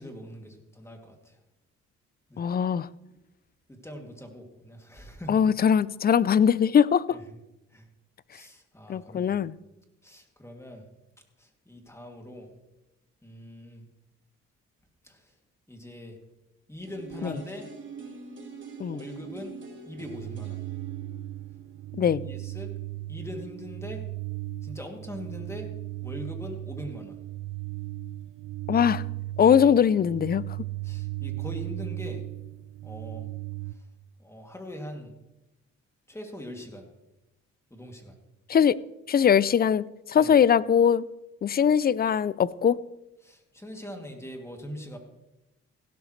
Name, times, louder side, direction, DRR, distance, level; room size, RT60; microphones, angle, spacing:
voice 1, 0.0-1.4 2.3-2.4 3.7-5.4 7.1-7.2 7.7-7.9 8.3-9.5 10.0-10.9 11.4-12.5 13.2-13.8 15.0-15.3 15.7-16.2 16.7-17.7 18.9-19.6 19.8-20.6 22.2-22.7 23.1-24.0 24.6-25.7 26.0-27.2 30.8-32.2 32.8-33.3 33.7-33.8 34.2-35.1 36.1-36.9 37.7-38.2 40.2-40.3 43.2-45.0, equal, 10° left, 2.7 m, -41 dB
voice 2, 2.4-2.9 5.3-7.2 8.9-9.6 17.2-17.3 18.8-19.0 21.9-22.2 28.7-29.0 29.4-30.4 38.5-38.8 39.1-41.1 41.4-42.8, left 8 dB, 30° left, 0.4 m, -21 dB
sound 1, 16.9-22.8 23.1-23.2, right 6 dB, 40° right, 3.8 m, -45 dB
sound 2, 20.0-33.7, right 16 dB, 85° right, 0.6 m, -37 dB
16.5 x 12.0 x 3.3 m
cardioid pair, 90°, 30 cm